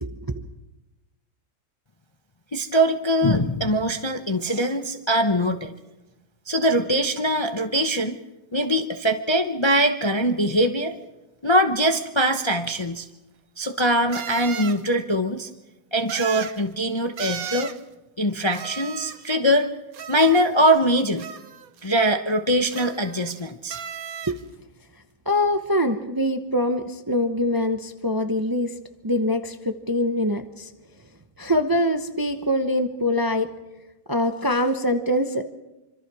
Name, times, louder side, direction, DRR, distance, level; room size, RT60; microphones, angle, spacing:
voice 1, 0.0-0.5 24.3-24.4 25.3-28.7 29.0-30.7 31.4-33.5 34.1-35.4, left 1 dB, 15° right, 7 dB, 0.7 m, -24 dB
voice 2, 2.5-5.7 6.5-8.2 8.5-10.9 11.4-13.1 13.6-15.5 15.9-17.7 18.2-19.7 20.1-21.3 21.8-23.8, equal, 25° left, 6 dB, 0.7 m, -22 dB
sound 1, 12.8-12.9 14.1-14.8 16.1-16.6 17.2-17.8 18.5-19.3 19.9-20.7 21.2-21.8 22.7-23.4 23.7-24.4, right 8 dB, 60° right, 1.4 m, -35 dB
25.5 x 25.5 x 4.9 m, 1.0 s
omnidirectional pair, 1.8 m